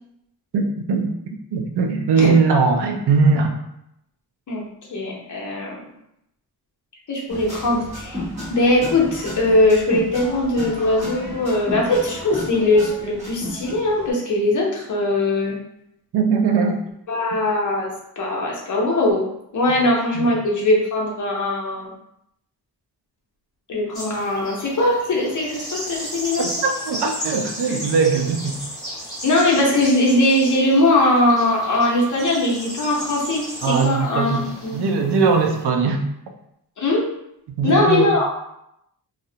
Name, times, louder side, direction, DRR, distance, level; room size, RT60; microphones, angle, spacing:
voice 1, 0.5-1.1 1.5-3.6 16.1-16.8 19.7-19.8 20.1-20.3 26.4-28.6 33.6-36.0 37.5-38.1, right 5 dB, 80° right, 3 dB, 0.5 m, -20 dB
voice 2, 4.9-5.9 7.1-8.2 8.5-15.6 17.1-17.9 18.2-19.2 19.5-21.9 23.7-26.5 27.7-27.8 29.2-34.8 36.8-37.1 37.6-38.3, left 1 dB, 50° left, -3 dB, 0.7 m, -20 dB
sound 1, 7.3-14.1, left 1 dB, 15° right, 0.8 m, -33 dB
sound 2, 23.9-35.6, equal, 10° left, 1.0 m, -34 dB
2.3 x 2.0 x 2.7 m, 0.78 s
wide cardioid pair, 95°, 40 cm